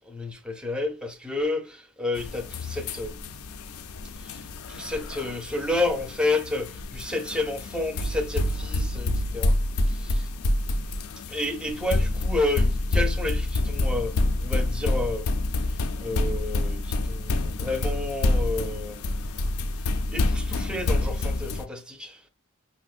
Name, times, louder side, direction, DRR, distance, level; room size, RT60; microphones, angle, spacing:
voice 1, 0.1-3.2 4.2-9.6 9.9-10.3 11.3-14.2 14.4-15.3 15.7-19.0 20.1-22.2, left 2 dB, 5° right, 0.5 m, -30 dB
sound 1, 2.2-21.7, left 2 dB, 70° left, 0.4 m, -27 dB
5.0 x 2.1 x 2.3 m
head